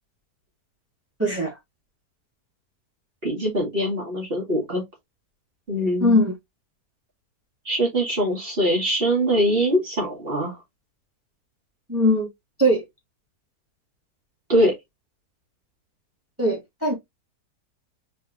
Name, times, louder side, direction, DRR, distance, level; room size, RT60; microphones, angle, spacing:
voice 1, 1.2-1.6 6.0-6.3 11.9-12.3 12.6-12.8 16.4-16.9, equal, 10° right, 2.3 m, -20 dB
voice 2, 3.2-4.8 5.7-6.2 7.7-10.6 14.5-14.7, equal, 35° right, 2.1 m, -22 dB
4.6 x 3.8 x 3.0 m
omnidirectional pair, 1.7 m